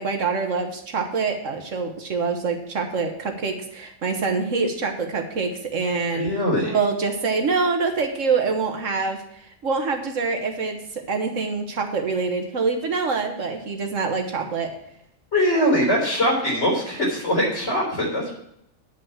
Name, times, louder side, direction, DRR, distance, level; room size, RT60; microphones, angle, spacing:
voice 1, 0.0-6.3 6.7-14.7, right 4 dB, 70° right, 4 dB, 1.6 m, -25 dB
voice 2, 6.1-6.8 15.3-18.4, equal, 60° left, -2 dB, 4.1 m, -22 dB
9.8 x 5.6 x 7.1 m, 0.75 s
omnidirectional pair, 1.4 m